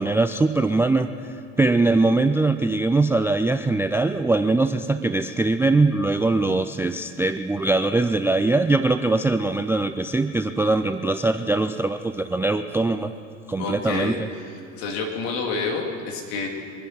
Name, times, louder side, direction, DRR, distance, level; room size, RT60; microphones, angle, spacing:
voice 1, 0.0-13.1 13.5-14.2, right 2 dB, 5° right, 10 dB, 0.3 m, -22 dB
voice 2, 13.6-16.5, left 4 dB, 60° left, 1 dB, 2.7 m, -29 dB
23.5 x 10.0 x 6.0 m, 2.3 s
figure-of-eight pair, 70°, 39 cm